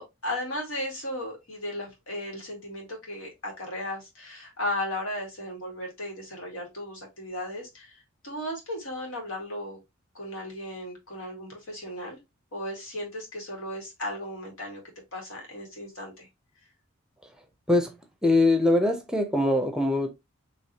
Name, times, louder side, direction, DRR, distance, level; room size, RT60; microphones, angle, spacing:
voice 1, 0.0-9.8 10.1-12.2 12.5-14.8 15.1-16.3, left 1 dB, 90° left, 2.2 m, -35 dB
voice 2, 18.2-20.1, left 2 dB, 5° right, 0.6 m, -22 dB
4.8 x 3.1 x 2.9 m
head